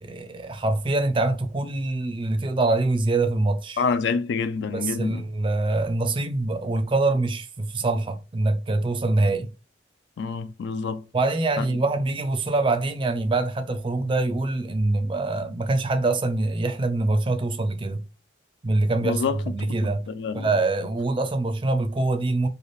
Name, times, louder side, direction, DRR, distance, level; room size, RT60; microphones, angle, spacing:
voice 1, 0.0-3.8 4.7-9.5 11.1-18.0 18.6-20.0 20.3-22.5, right 2 dB, 25° right, 0.4 m, -24 dB
voice 2, 3.8-5.3 10.2-11.0 11.6-11.7 19.0-20.5, left 5 dB, 70° left, 0.3 m, -27 dB
3.2 x 2.3 x 2.6 m
head